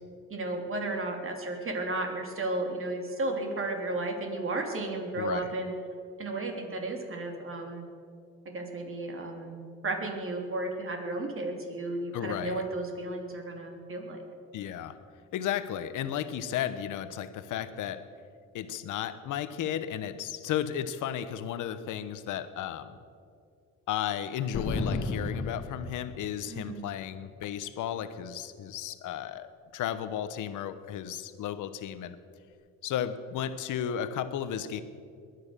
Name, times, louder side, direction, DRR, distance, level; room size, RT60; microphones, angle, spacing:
voice 1, 0.3-5.7 6.2-7.9 8.5-9.6 9.8-14.2 26.5-26.8, right 2 dB, 45° right, 2 dB, 3.3 m, -33 dB
voice 2, 5.1-5.5 12.1-12.6 14.5-15.0 15.3-18.1 18.5-23.0 23.9-32.2 32.8-34.8, left 10 dB, 85° left, 12 dB, 1.0 m, -34 dB
sound 1, 24.5-26.5, left 3 dB, 50° left, 1.8 m, -33 dB
21.5 x 9.7 x 6.8 m, 2.3 s
cardioid pair, 90°, 30 cm